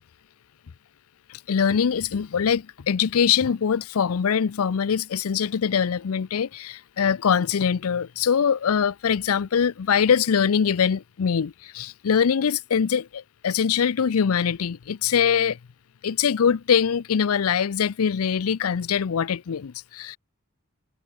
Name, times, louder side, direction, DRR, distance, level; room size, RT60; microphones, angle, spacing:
voice 1, 1.3-15.6 16.0-20.2, left 7 dB, 75° left, 0.5 m, -23 dB
head